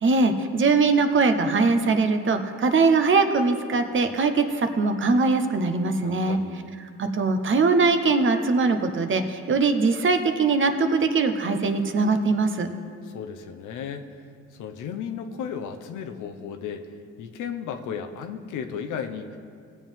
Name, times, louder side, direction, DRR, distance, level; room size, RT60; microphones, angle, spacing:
voice 1, 0.0-6.4 7.0-12.7, right 4 dB, 40° right, 7 dB, 0.9 m, -21 dB
voice 2, 6.0-6.7 13.0-14.1 14.6-16.9 17.2-19.4, left 7 dB, 90° left, 6 dB, 0.8 m, -34 dB
18.0 x 7.3 x 3.6 m, 2.2 s
cardioid pair, 90°, 30 cm